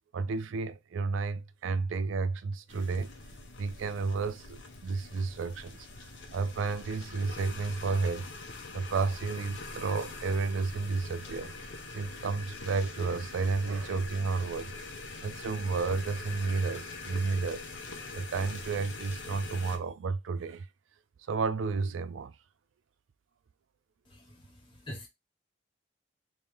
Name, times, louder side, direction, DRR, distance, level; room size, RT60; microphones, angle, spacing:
voice 1, 0.1-3.1 3.6-8.3 8.7-11.5 11.9-14.7 15.2-17.6 18.1-20.7 21.3-22.4, right 4 dB, 80° right, 0.4 m, -32 dB
sound 1, 2.7-19.8, left 3 dB, 65° left, 1.0 m, -43 dB
voice 2, 24.1-25.1, equal, 30° left, 1.6 m, -45 dB
3.3 x 3.0 x 3.4 m
head